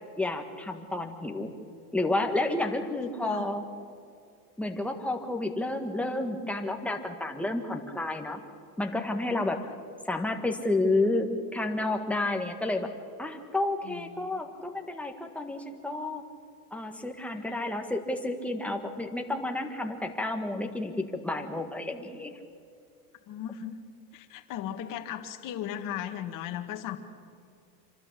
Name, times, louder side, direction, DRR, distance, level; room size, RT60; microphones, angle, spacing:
voice 1, 0.2-1.5 1.9-3.6 4.6-8.4 8.8-9.6 10.0-12.9 13.2-16.2 16.7-22.4, left 2 dB, 5° left, 3 dB, 1.6 m, -30 dB
voice 2, 3.0-3.5 13.8-14.4 17.4-17.6 23.3-23.8 24.1-27.0, left 10 dB, 40° left, 6 dB, 2.0 m, -37 dB
27.0 x 12.5 x 8.5 m, 2.4 s
supercardioid pair, 135°, 48 cm